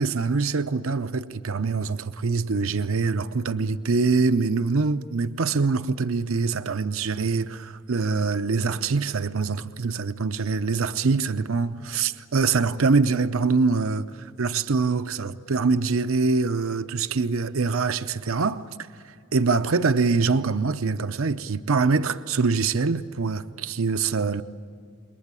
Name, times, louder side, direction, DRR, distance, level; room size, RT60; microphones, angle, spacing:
voice 1, 0.0-18.6 19.1-24.4, right 4 dB, 75° right, 0.7 m, -24 dB
28.0 x 22.0 x 9.0 m
head